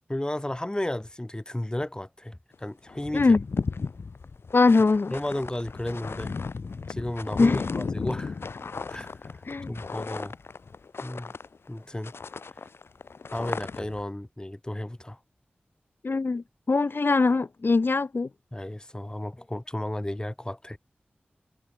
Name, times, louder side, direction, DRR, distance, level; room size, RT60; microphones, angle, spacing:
voice 1, 0.1-3.3 5.1-6.3 6.9-8.4 8.9-10.4 11.0-11.3 11.7-12.1 13.3-15.2 18.5-20.8, left 1 dB, 20° left, 7.0 m, -33 dB
sound 1, 2.5-2.6 2.9-11.8 12.0-14.0, left 4 dB, 80° left, 3.4 m, -35 dB
voice 2, 4.5-5.1 7.4-7.6 9.5-9.7 16.0-18.3, left 3 dB, 60° left, 1.6 m, -22 dB
cardioid pair, 45°, 4 cm